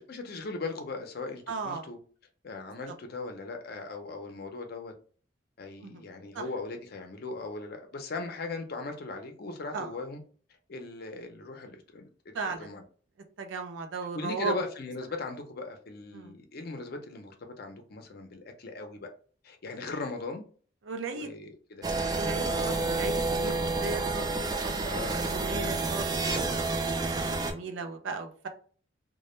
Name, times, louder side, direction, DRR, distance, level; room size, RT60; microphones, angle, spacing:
voice 1, 0.0-2.0 2.4-4.9 5.6-10.2 10.7-12.8 14.1-19.1 19.4-20.5 21.1-21.9 22.4-23.0 24.9-25.2, left 3 dB, 55° left, 5 dB, 0.5 m, -39 dB
voice 2, 1.5-1.9 5.8-6.0 6.3-6.4 9.7-9.9 12.3-12.7 13.4-14.5 16.1-16.4 20.8-21.3 22.2-28.5, right 4 dB, 85° right, 6 dB, 0.5 m, -37 dB
sound 1, 21.8-27.5, right 3 dB, 20° right, 0.3 m, -29 dB
2.2 x 2.1 x 3.0 m, 0.43 s
head